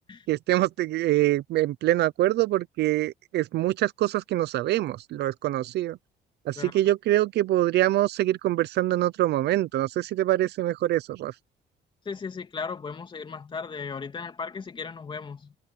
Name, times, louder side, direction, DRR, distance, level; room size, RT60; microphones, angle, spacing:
voice 1, 0.3-6.0 6.5-11.3, right 15 dB, 65° right, 0.7 m, -24 dB
voice 2, 12.0-15.6, left 5 dB, 25° left, 2.7 m, -36 dB
cardioid pair, 145°, 18 cm